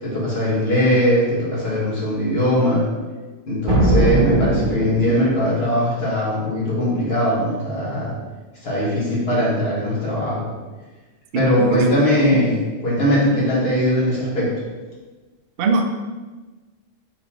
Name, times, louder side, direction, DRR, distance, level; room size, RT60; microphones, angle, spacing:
voice 1, 0.0-2.9 3.5-8.1 8.6-10.5 11.3-14.5, equal, 50° left, -7 dB, 1.6 m, -20 dB
sound 1, 3.7-5.4, right 1 dB, 85° right, 1.5 m, -19 dB
voice 2, 11.3-11.9 12.2-12.4 15.6-15.8, right 4 dB, 60° right, 4 dB, 0.6 m, -21 dB
4.4 x 3.9 x 2.8 m, 1.3 s
omnidirectional pair, 1.4 m